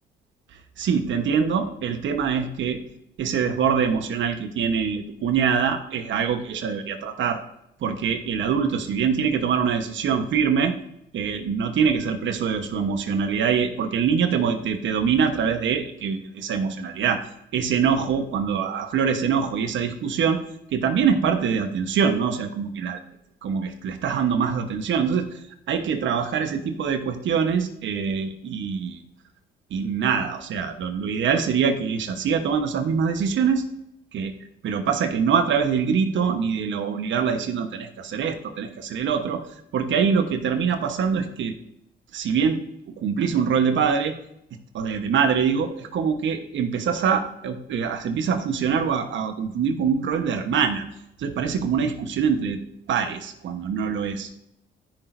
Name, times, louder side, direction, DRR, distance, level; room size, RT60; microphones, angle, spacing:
voice 1, 0.8-2.8 3.2-7.4 7.8-10.7 11.1-17.2 17.5-20.4 20.7-23.0 23.4-25.4 25.7-29.0 29.7-33.7 34.1-34.3 34.6-39.4 39.7-41.5 42.1-42.6 43.0-44.1 44.7-50.8 51.2-52.6 52.9-53.2 53.4-54.4, right 6 dB, 70° right, 7 dB, 1.2 m, -24 dB
14.0 x 6.1 x 2.7 m, 0.78 s
cardioid pair, 90°, 20 cm